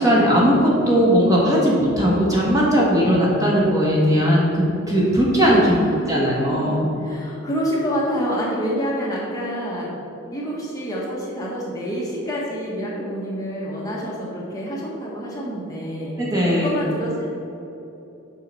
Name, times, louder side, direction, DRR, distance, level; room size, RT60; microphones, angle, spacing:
voice 1, 0.0-5.8 6.1-6.8 16.2-16.7, equal, 15° right, -5 dB, 1.3 m, -18 dB
voice 2, 5.6-10.0 10.3-16.1 16.5-17.3, equal, 15° left, -5 dB, 1.3 m, -28 dB
7.3 x 5.6 x 5.5 m, 3.0 s
head